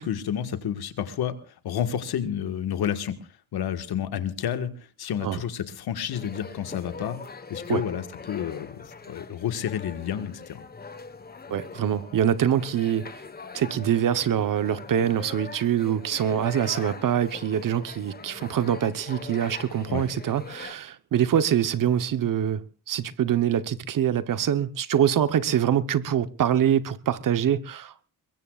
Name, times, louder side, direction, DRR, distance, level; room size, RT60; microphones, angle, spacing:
voice 1, 0.0-3.2 3.5-10.6 19.9-20.0, left 9 dB, 80° left, 1.7 m, -30 dB
sound 1, 6.1-20.7, left 4 dB, 25° left, 1.2 m, -42 dB
voice 2, 11.5-13.1 13.5-28.1, right 9 dB, 55° right, 1.0 m, -24 dB
22.5 x 22.0 x 2.4 m
cardioid pair, 105°, 38 cm